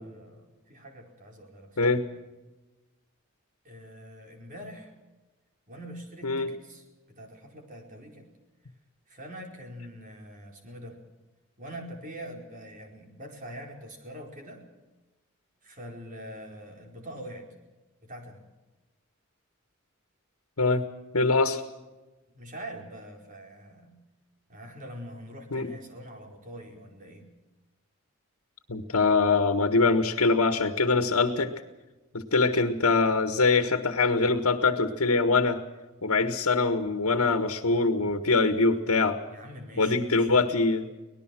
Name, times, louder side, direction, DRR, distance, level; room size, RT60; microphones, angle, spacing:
voice 1, 0.0-2.1 3.6-4.9 5.7-8.3 9.1-11.0 11.6-14.6 15.6-17.5 18.0-18.4 22.3-23.9 24.5-27.3 39.3-40.4, equal, 40° right, 2 dB, 4.7 m, -44 dB
voice 2, 21.1-21.6 25.5-25.7 28.7-31.5 32.1-35.6 36.0-39.2 39.8-40.9, left 3 dB, 85° left, 7 dB, 1.6 m, -23 dB
24.5 x 19.0 x 6.2 m, 1.1 s
head